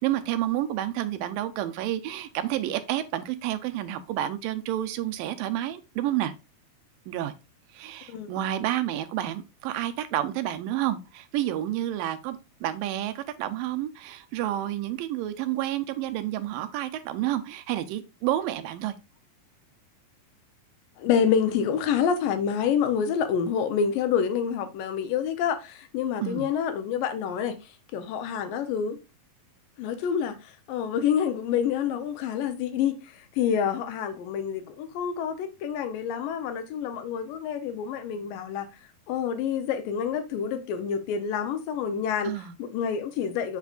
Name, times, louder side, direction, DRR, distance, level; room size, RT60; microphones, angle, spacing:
voice 1, 0.0-6.3 7.1-7.3 7.7-18.9 26.2-26.5 42.2-42.6, right 13 dB, 80° right, 2.3 m, -30 dB
voice 2, 21.0-29.0 29.8-38.7 39.1-42.3 42.6-43.6, left 7 dB, 75° left, 2.4 m, -27 dB
8.2 x 5.9 x 2.4 m
omnidirectional pair, 4.1 m